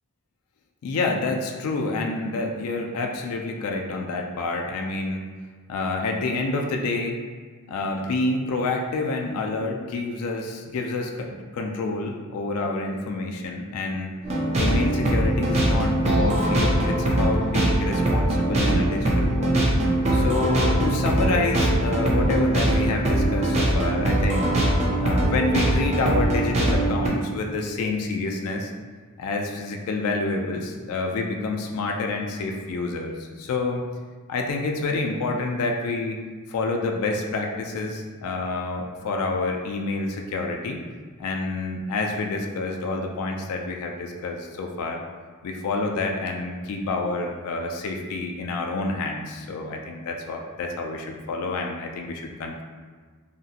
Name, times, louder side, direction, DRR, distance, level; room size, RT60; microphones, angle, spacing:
voice 1, 0.8-5.3 5.7-7.2 7.7-14.1 14.5-19.6 20.1-24.5 25.0-28.7 29.2-33.8 34.3-36.2 36.5-40.8 41.2-45.0 45.4-52.6, left 3 dB, 80° left, 2 dB, 0.3 m, -28 dB
sound 1, 14.2-27.1, right 1 dB, 30° right, 0.4 m, -22 dB
2.8 x 2.6 x 2.5 m, 1.5 s
head